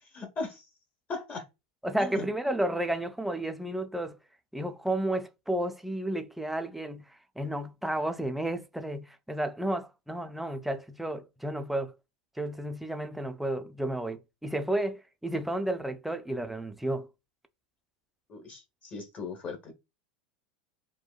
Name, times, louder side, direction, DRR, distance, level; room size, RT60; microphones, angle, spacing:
voice 1, 0.1-0.6 1.1-1.4 2.0-2.3 18.3-19.7, left 4 dB, 35° left, 1.0 m, -38 dB
voice 2, 1.8-4.2 4.5-7.1 7.4-11.9 12.4-17.1, right 1 dB, 5° right, 0.4 m, -32 dB
4.3 x 2.2 x 2.2 m
hypercardioid pair, 90°, 5 cm